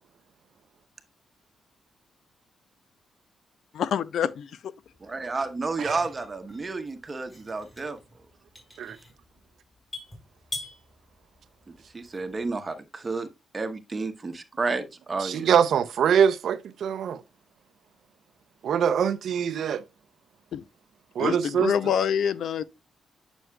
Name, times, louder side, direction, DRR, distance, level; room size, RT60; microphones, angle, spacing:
voice 1, 3.7-4.7 20.5-20.6 21.2-22.6, left 8 dB, 75° left, 0.5 m, -26 dB
sound 1, 4.9-12.4, left 2 dB, 20° left, 4.5 m, -44 dB
voice 2, 5.0-8.0 11.9-13.3 13.5-15.5, right 3 dB, 30° right, 1.0 m, -31 dB
voice 3, 15.2-17.2 18.6-19.8 21.2-21.7, right 8 dB, 75° right, 0.6 m, -23 dB
9.1 x 6.2 x 2.3 m
cardioid pair, 95°, 0 cm